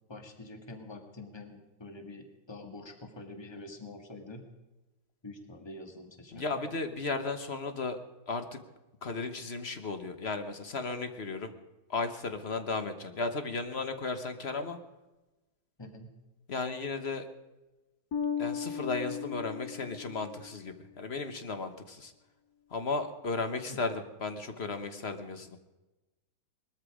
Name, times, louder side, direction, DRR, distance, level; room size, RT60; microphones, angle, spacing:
voice 1, 0.1-4.4 5.2-6.7 15.8-16.1 23.7-23.8, left 2 dB, 15° left, 5 dB, 1.8 m, -46 dB
voice 2, 6.3-8.0 8.3-8.6 9.0-11.5 11.9-14.8 16.5-17.3 18.4-22.1 22.7-25.6, left 3 dB, 35° left, 8 dB, 1.2 m, -35 dB
Bass guitar, 18.1-20.8, left 7 dB, 60° left, 1.2 m, -36 dB
20.5 x 13.5 x 5.0 m, 1.1 s
omnidirectional pair, 2.2 m